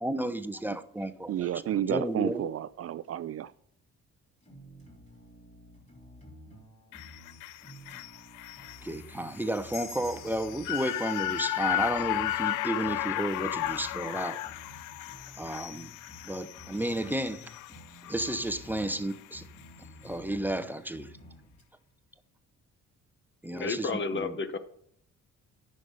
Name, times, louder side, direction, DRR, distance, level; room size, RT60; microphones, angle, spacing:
voice 1, 0.0-1.5 1.9-2.5 8.8-14.4 15.4-15.9 16.2-17.5 18.1-19.4 20.0-21.1 23.4-24.3, right 1 dB, 5° right, 0.7 m, -32 dB
voice 2, 1.3-3.5, right 11 dB, 50° right, 0.4 m, -31 dB
sound 1, 4.4-21.6, left 1 dB, 25° left, 3.3 m, -52 dB
sound 2, 6.9-19.3 19.6-19.7, left 15 dB, 90° left, 0.5 m, -35 dB
sound 3, 9.7-12.8, left 4 dB, 75° left, 3.2 m, -49 dB
voice 3, 23.5-24.6, left 4 dB, 40° left, 1.0 m, -32 dB
9.8 x 6.5 x 5.5 m
cardioid pair, 90°, 30 cm